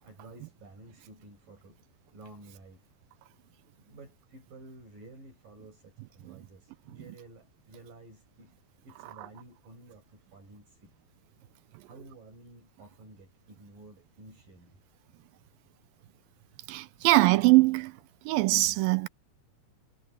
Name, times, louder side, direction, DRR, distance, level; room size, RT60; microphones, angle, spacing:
voice 1, 0.0-1.8 2.1-2.9 3.8-8.5 8.8-10.9 11.8-14.8, right 2 dB, 55° right, 9.7 m, -52 dB
voice 2, 16.7-17.9 18.3-19.1, right 19 dB, 80° right, 2.1 m, -22 dB
omnidirectional pair, 4.7 m